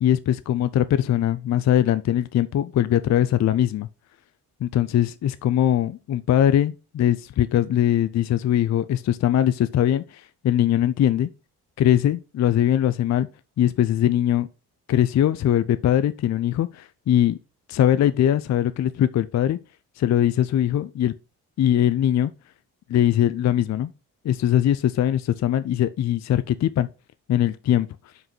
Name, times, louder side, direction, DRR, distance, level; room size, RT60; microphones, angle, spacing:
voice 1, 0.0-3.9 4.6-11.3 11.8-13.3 13.6-14.5 14.9-17.4 17.7-19.6 20.0-21.1 21.6-22.3 22.9-23.9 24.2-26.9 27.3-27.9, left 11 dB, 40° left, 0.5 m, -21 dB
5.4 x 4.9 x 5.4 m
hypercardioid pair, 45°, 45 cm